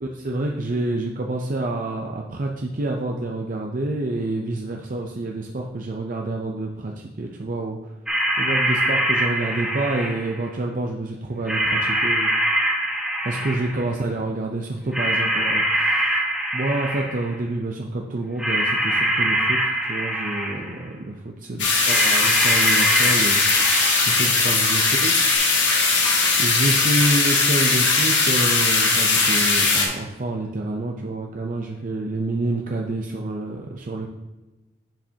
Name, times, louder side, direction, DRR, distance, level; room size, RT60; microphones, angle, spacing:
voice 1, 0.0-6.9 7.2-7.8 8.4-12.3 13.2-16.2 16.5-23.4 24.1-25.7 26.4-34.1, right 2 dB, 45° right, 1 dB, 0.6 m, -28 dB
sound 1, 8.1-10.4 11.5-13.9 14.9-17.3 18.4-20.8 21.8-24.3 25.3-25.4, right 1 dB, 5° right, 1.1 m, -23 dB
sound 2, 21.6-29.9, left 3 dB, 80° left, 1.6 m, -19 dB
10.5 x 5.1 x 2.8 m, 1.1 s
head